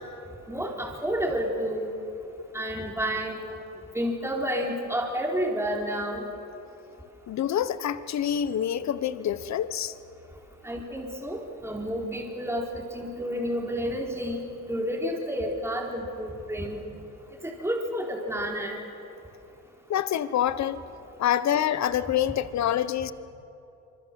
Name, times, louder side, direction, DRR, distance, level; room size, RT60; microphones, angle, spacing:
voice 1, 0.5-1.9 2.5-3.4 3.9-6.2 10.6-16.8 17.4-18.8, equal, 10° right, -1 dB, 4.3 m, -30 dB
voice 2, 7.3-9.9 19.9-20.8 21.2-23.1, left 10 dB, 65° left, 14 dB, 1.1 m, -26 dB
26.0 x 25.0 x 7.7 m, 2.8 s
cardioid pair, 90°, 30 cm